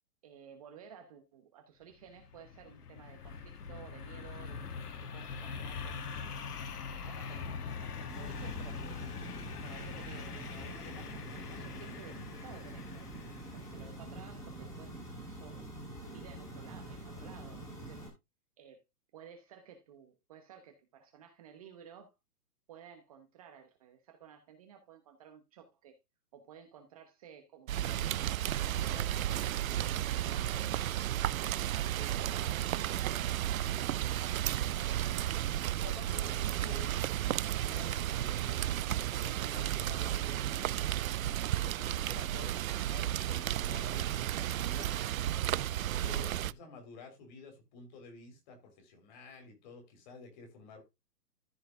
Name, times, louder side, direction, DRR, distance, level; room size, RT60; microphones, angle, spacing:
voice 1, 0.2-6.1 6.9-7.6 8.0-9.1 9.6-13.1 13.5-15.7 16.0-18.1 18.6-18.8 19.1-22.1 22.7-26.0 26.3-28.4 30.0-30.9 31.6-35.5 42.3-42.6, right 8 dB, 25° right, 1.0 m, -54 dB
sound 1, 2.0-13.6, left 5 dB, 75° left, 1.9 m, -43 dB
sound 2, 8.1-18.1, right 1 dB, 5° left, 2.5 m, -46 dB
Rain, 27.7-46.5, right 12 dB, 60° right, 0.5 m, -33 dB
voice 2, 28.8-30.1 35.8-37.0 37.4-40.9 41.6-45.0 45.8-50.8, left 4 dB, 30° left, 3.3 m, -51 dB
14.5 x 4.8 x 3.7 m
hypercardioid pair, 170°, 46 cm